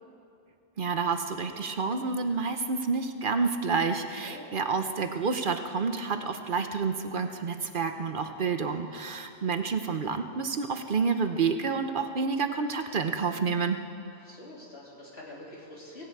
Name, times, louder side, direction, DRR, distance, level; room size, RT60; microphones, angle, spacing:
voice 1, 0.8-13.8, right 5 dB, 55° right, 7 dB, 0.9 m, -29 dB
voice 2, 14.1-16.0, left 1 dB, 75° left, -5 dB, 3.6 m, -46 dB
17.5 x 16.5 x 4.7 m, 2.4 s
omnidirectional pair, 1.1 m